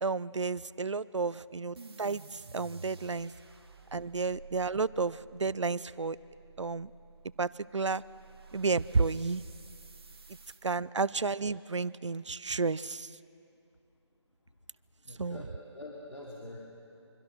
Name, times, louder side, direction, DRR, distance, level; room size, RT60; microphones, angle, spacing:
voice 1, 0.0-3.3 3.9-6.2 6.6-6.9 7.4-8.0 8.5-9.4 10.6-13.1 15.2-15.4, right 4 dB, 80° right, 19 dB, 0.6 m, -31 dB
sound 1, 1.8-10.6, right 4 dB, 55° right, 1.8 m, -52 dB
voice 2, 15.0-16.6, left 1 dB, 85° left, -3 dB, 3.8 m, -45 dB
25.5 x 24.5 x 6.2 m, 2.6 s
figure-of-eight pair, 160°, 15 cm